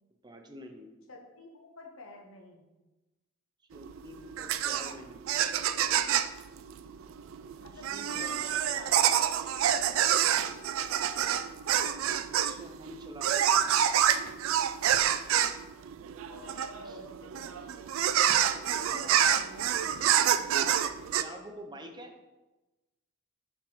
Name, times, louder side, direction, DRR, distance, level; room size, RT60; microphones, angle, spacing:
voice 1, 0.2-0.9 3.7-5.2 7.0-7.1 7.7-8.8 12.3-13.8 16.8-17.0 18.8-19.2 21.1-22.1, equal, 20° right, 5 dB, 0.6 m, -47 dB
voice 2, 1.1-2.6 7.6-8.9 9.2-10.6 14.8-15.1 16.3-18.3 18.7-20.8, left 1 dB, 80° left, 2 dB, 1.2 m, -50 dB
sound 1, 3.7-21.2, right 10 dB, 75° right, 0.3 m, -27 dB
7.6 x 4.4 x 3.1 m, 1.1 s
head